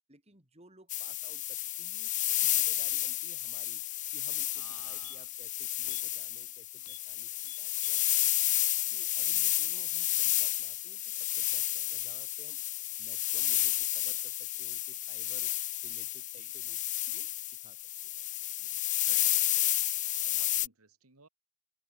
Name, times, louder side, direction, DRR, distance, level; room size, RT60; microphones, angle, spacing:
voice 1, 0.1-2.1 2.4-3.8 4.1-7.3 7.6-8.6 8.9-16.8 17.1-17.3 17.6-18.1 18.6-18.8, right 2 dB, 30° right, 4.6 m, -59 dB
sound 1, 0.9-20.7, left 15 dB, 35° left, 0.6 m, -31 dB
sound 2, 4.2-4.3 4.6-5.5 5.8-6.1 6.4-6.5 6.8-7.1 7.4-8.1 8.5-8.6, left 14 dB, 75° left, 3.1 m, -53 dB
voice 2, 4.5-5.3 9.3-9.5 16.3-16.5 19.0-21.3, right 5 dB, 75° right, 2.8 m, -58 dB
head